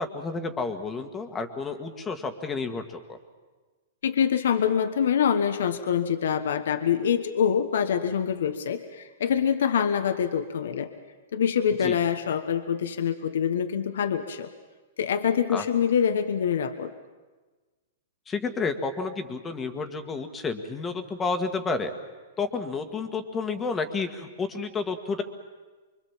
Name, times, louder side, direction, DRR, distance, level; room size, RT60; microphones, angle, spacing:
voice 1, 0.0-3.2 11.8-12.0 15.5-15.6 18.3-21.9 22.4-25.2, left 4 dB, 15° left, 7 dB, 1.8 m, -30 dB
voice 2, 4.0-10.9 11.3-14.5 15.0-16.9, left 8 dB, 80° left, 8 dB, 1.3 m, -25 dB
25.5 x 23.5 x 7.4 m, 1.3 s
hypercardioid pair, 145°, 0 cm